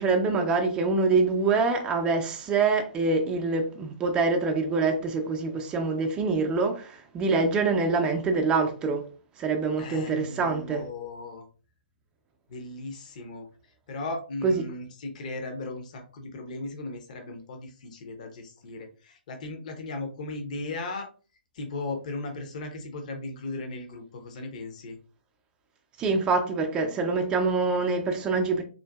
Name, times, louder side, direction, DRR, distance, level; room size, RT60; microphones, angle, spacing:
voice 1, 0.0-9.0 9.4-10.8 14.4-14.6 26.0-28.6, right 4 dB, 15° right, 0.6 m, -25 dB
voice 2, 9.8-11.4 12.5-13.5 13.9-21.1 21.5-25.0, left 2 dB, 45° left, 0.8 m, -37 dB
3.9 x 2.5 x 2.3 m
figure-of-eight pair, 125°, 5 cm